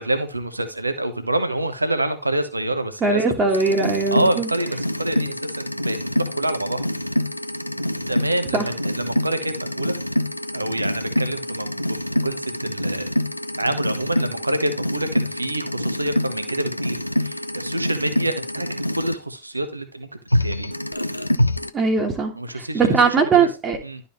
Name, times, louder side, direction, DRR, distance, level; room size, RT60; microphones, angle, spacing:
voice 1, 0.0-3.5 4.1-6.0 6.3-6.8 8.0-9.9 10.5-11.8 12.1-13.1 13.6-20.1 20.4-20.7 22.3-23.5 23.8-24.0, right 1 dB, 85° right, 9 dB, 1.0 m, -27 dB
voice 2, 3.0-4.5 8.5-8.6 21.7-23.8, right 4 dB, 25° right, 2 dB, 1.5 m, -20 dB
sound 1, 3.5-19.1 20.3-21.7, left 1 dB, 85° left, 0.5 m, -26 dB
11.5 x 5.5 x 3.0 m, 0.32 s
figure-of-eight pair, 90°, 0 cm